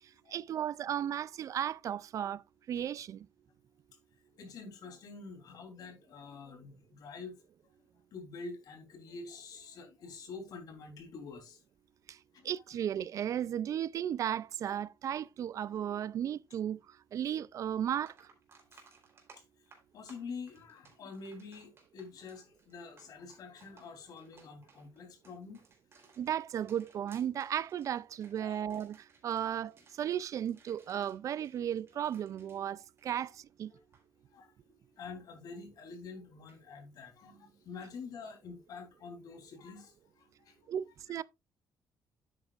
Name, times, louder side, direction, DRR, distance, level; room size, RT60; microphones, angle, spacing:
voice 1, 0.3-2.4 2.7-3.3 12.1-12.2 12.4-16.8 17.1-18.3 26.2-33.7 40.7-41.2, right 10 dB, 50° right, 0.3 m, -35 dB
voice 2, 4.3-7.3 8.1-11.6 12.3-12.5 18.7-18.8 19.9-25.6 28.4-28.6 33.7-33.8 34.3-34.5 35.0-40.7, left 4 dB, 65° left, 3.3 m, -47 dB
sound 1, 17.4-17.5 17.9-33.5 33.8-34.0 36.5-36.6, right 4 dB, 35° right, 3.5 m, -63 dB
10.5 x 8.6 x 2.4 m
cardioid pair, 160°, 7 cm